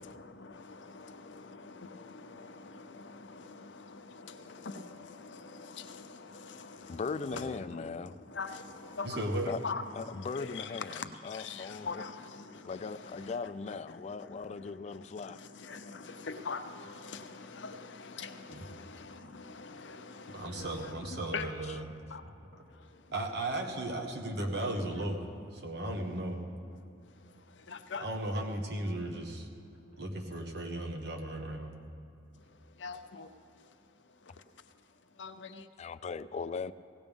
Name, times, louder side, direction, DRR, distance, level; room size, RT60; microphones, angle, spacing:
voice 1, 0.0-7.1 7.3-13.4 13.7-21.5 22.1-22.2 22.7-23.1 26.8-28.1 32.8-33.3 33.6-33.7 34.2-34.4 35.1-35.7, left 4 dB, 70° left, 0.8 m, -44 dB
voice 2, 6.9-8.1 9.5-9.6 9.9-12.0 12.6-15.4 21.7-21.8 35.8-36.7, left 5 dB, 35° left, 0.3 m, -39 dB
voice 3, 9.0-9.5 18.5-18.7 20.3-21.9 22.2-22.3 23.1-25.2 25.5-26.4 28.0-29.5 30.0-31.7, right 1 dB, 60° right, 1.3 m, -36 dB
17.5 x 17.5 x 3.6 m
head